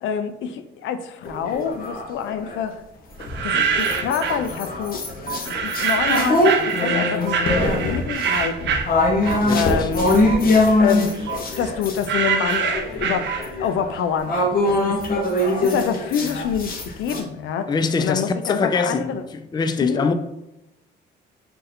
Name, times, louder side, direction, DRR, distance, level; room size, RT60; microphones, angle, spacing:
voice 1, 0.0-2.8 3.4-5.0 5.3-8.8 9.5-10.1 10.8-15.0 15.4-16.7 17.0-17.7 18.0-19.2 19.8-20.1, left 7 dB, 80° left, 0.5 m, -27 dB
sound 1, 1.2-2.6 3.2-12.1 12.5-17.2, left 2 dB, 45° left, 0.9 m, -23 dB
sound 2, 3.2-4.5 5.4-9.7 10.0-13.8, right 6 dB, 65° right, 0.6 m, -25 dB
sound 3, 4.3-4.4 5.3-5.4 6.3-6.4 7.3-7.4 8.3-8.4 9.3-9.4 10.3-10.4 11.3-11.4 12.3-12.4 13.3-13.4, right 10 dB, 80° right, 1.0 m, -29 dB
voice 2, 9.4-9.9 17.7-19.1 19.3-20.1, left 4 dB, 20° left, 0.3 m, -23 dB
3.8 x 2.6 x 4.1 m
cardioid pair, 90°, 20 cm